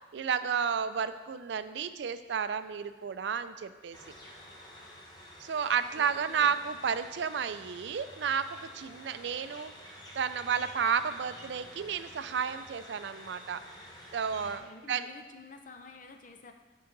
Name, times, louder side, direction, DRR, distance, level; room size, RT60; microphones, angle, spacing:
voice 1, 0.1-4.0 5.4-13.6 14.1-15.1, right 7 dB, 70° right, 12 dB, 0.4 m, -32 dB
sound 1, 3.9-14.6, equal, 25° left, 1.2 m, -50 dB
voice 2, 6.0-6.5 14.3-16.5, left 3 dB, 45° left, 5 dB, 0.7 m, -50 dB
10.5 x 5.6 x 3.9 m, 1.2 s
head